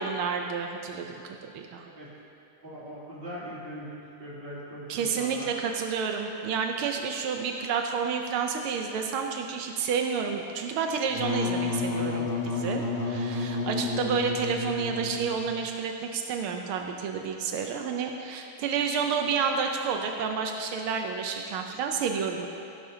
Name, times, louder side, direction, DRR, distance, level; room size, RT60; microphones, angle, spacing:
voice 1, 0.0-1.8 4.9-22.5, right 6 dB, 85° right, 3 dB, 1.6 m, -30 dB
voice 2, 2.6-5.5, equal, 25° right, -8 dB, 2.8 m, -40 dB
Wind instrument woodwind instrument, 11.1-15.7, left 3 dB, 70° left, 1.8 m, -31 dB
17.0 x 10.5 x 2.8 m, 2.7 s
omnidirectional pair, 2.3 m